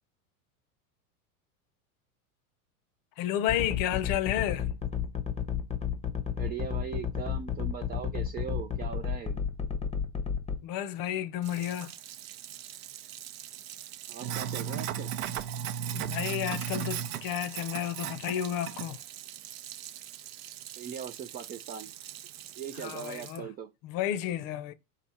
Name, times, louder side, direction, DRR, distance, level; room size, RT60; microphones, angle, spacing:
voice 1, 3.2-4.7 10.6-11.9 15.9-19.0 22.8-23.5 23.8-24.7, left 11 dB, 50° left, 0.7 m, -31 dB
sound 1, 3.5-10.6, left 8 dB, 15° left, 0.7 m, -31 dB
voice 2, 6.3-9.4 14.1-15.1 20.8-21.9 22.6-23.7, right 8 dB, 25° right, 0.3 m, -40 dB
Sink (filling or washing), 11.4-23.4, right 9 dB, 65° right, 0.7 m, -38 dB
4.0 x 2.7 x 4.2 m
hypercardioid pair, 95°, 44 cm